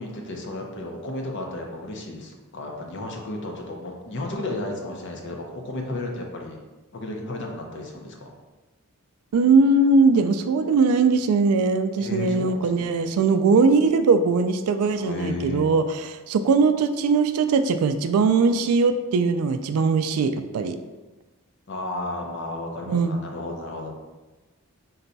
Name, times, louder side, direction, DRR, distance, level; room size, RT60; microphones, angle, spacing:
voice 1, 0.0-6.6 6.9-8.3 12.0-13.1 15.0-15.7 21.7-23.9, left 2 dB, 55° left, 1 dB, 0.6 m, -33 dB
voice 2, 9.3-20.8 22.9-23.2, right 4 dB, 85° right, 9 dB, 0.3 m, -20 dB
3.9 x 2.2 x 3.9 m, 1.2 s
head